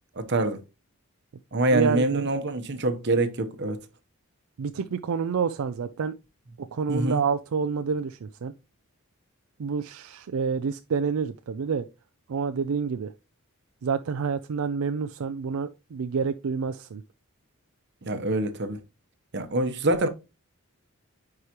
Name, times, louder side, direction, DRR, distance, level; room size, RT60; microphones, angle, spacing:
voice 1, 0.2-0.6 1.5-3.8 6.9-7.2 18.0-18.8 19.3-20.1, right 2 dB, 50° right, 0.9 m, -25 dB
voice 2, 1.7-2.3 4.6-6.2 6.6-8.5 9.6-11.9 12.3-13.1 13.8-17.0, right 5 dB, 75° right, 0.4 m, -28 dB
9.5 x 4.8 x 2.9 m
head